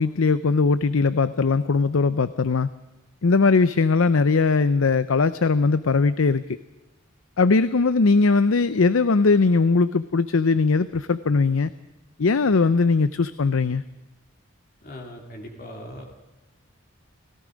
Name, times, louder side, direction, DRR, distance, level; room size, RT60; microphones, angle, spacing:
voice 1, 0.0-2.7 3.2-6.4 7.4-11.7 12.2-13.8, left 4 dB, 85° left, 14 dB, 0.6 m, -20 dB
voice 2, 14.8-16.1, left 1 dB, 45° left, 1 dB, 2.9 m, -39 dB
30.0 x 17.5 x 5.2 m, 1.1 s
head